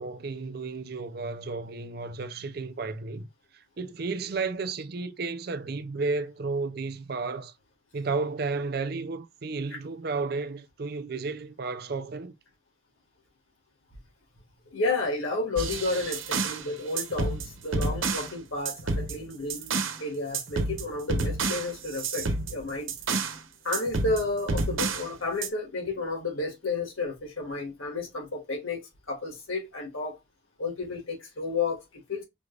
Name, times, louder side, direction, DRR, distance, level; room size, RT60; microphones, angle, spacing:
voice 1, 0.0-3.3 3.8-7.5 7.9-12.3, right 4 dB, 50° right, 0.5 m, -32 dB
voice 2, 14.7-19.7 20.0-22.9 23.6-28.8 29.1-30.2 30.6-32.2, left 3 dB, 85° left, 1.9 m, -31 dB
sound 1, 15.6-16.6 17.0-18.3 18.6-20.0 20.3-23.4 23.7-25.1 25.4-25.5, right 3 dB, 85° right, 0.8 m, -30 dB
5.0 x 3.3 x 2.4 m
head